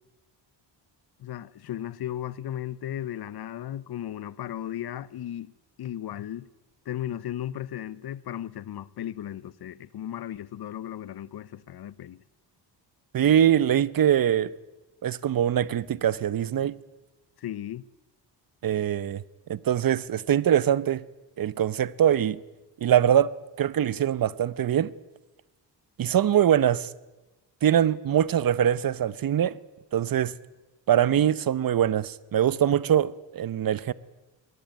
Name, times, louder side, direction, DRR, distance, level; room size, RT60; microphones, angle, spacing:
voice 1, 1.2-5.5 5.8-6.5 6.9-12.2 17.4-17.8, left 11 dB, 60° left, 0.9 m, -35 dB
voice 2, 13.1-14.5 15.0-16.7 18.6-19.2 19.5-21.0 21.4-22.4 22.8-23.3 23.6-24.9 26.0-26.9 27.6-29.6 29.9-30.3 30.9-33.9, right 10 dB, 50° right, 0.9 m, -23 dB
23.0 x 19.0 x 9.3 m
cardioid pair, 125°, 44 cm